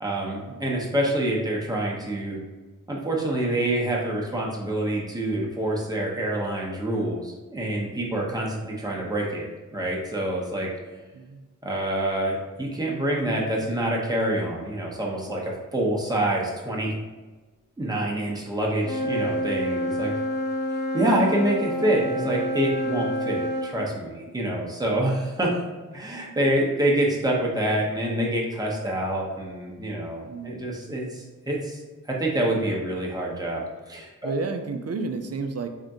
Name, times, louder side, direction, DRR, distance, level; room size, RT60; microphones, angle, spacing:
voice 1, 0.0-2.4 2.9-10.7 11.6-16.9 17.8-20.1 20.9-25.5 25.9-34.3, right 1 dB, 10° right, -3 dB, 0.8 m, -26 dB
Wind instrument woodwind instrument, 18.8-23.7, equal, 30° left, 0.8 m, -28 dB
voice 2, 30.2-30.6 34.2-35.7, right 3 dB, 50° right, 6 dB, 0.4 m, -31 dB
3.6 x 2.7 x 3.5 m, 1.2 s
wide cardioid pair, 90°, 33 cm